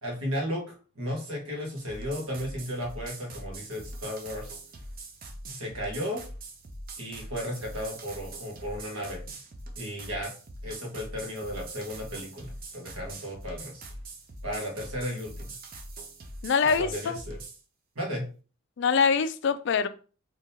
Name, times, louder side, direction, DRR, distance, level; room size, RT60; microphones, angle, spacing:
voice 1, 0.0-4.5 5.5-6.2 7.0-9.2 9.8-10.3 10.6-13.8 14.4-15.5 16.6-17.4 17.9-18.2, equal, 75° right, 1.4 m, -34 dB
sound 1, 1.8-17.6, right 2 dB, 40° right, 0.6 m, -43 dB
voice 2, 16.4-17.2 18.8-19.9, left 5 dB, 55° left, 0.3 m, -24 dB
3.6 x 2.9 x 2.8 m
head